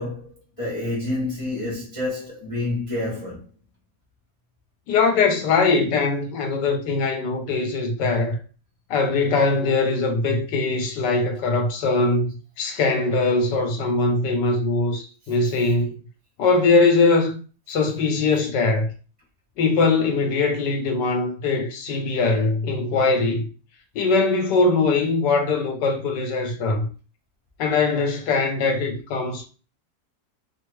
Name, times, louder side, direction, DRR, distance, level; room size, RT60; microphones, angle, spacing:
voice 1, 0.0-3.5 15.4-15.7, left 2 dB, 25° left, 0.8 m, -29 dB
voice 2, 4.9-8.4 8.9-12.3 12.6-15.9 16.4-17.4 17.7-18.9 19.6-23.5 23.9-26.9 27.6-29.4, left 3 dB, 75° left, 1.3 m, -21 dB
3.0 x 2.4 x 3.0 m
omnidirectional pair, 1.9 m